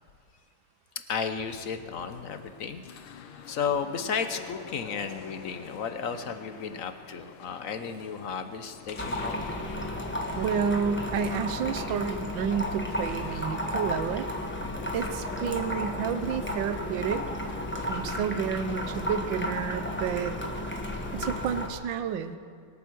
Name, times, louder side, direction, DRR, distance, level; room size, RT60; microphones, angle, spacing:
voice 1, 1.1-2.8 3.5-9.5, left 6 dB, 60° left, 9 dB, 0.8 m, -33 dB
sound 1, 1.3-21.3, left 7 dB, 90° left, 1.9 m, -45 dB
sound 2, 9.0-21.7, left 1 dB, 5° left, 0.9 m, -33 dB
voice 2, 10.4-14.3 14.9-17.2 17.9-20.4 21.1-22.4, right 7 dB, 70° right, 11 dB, 1.4 m, -30 dB
24.5 x 9.2 x 6.2 m, 2.2 s
omnidirectional pair, 2.3 m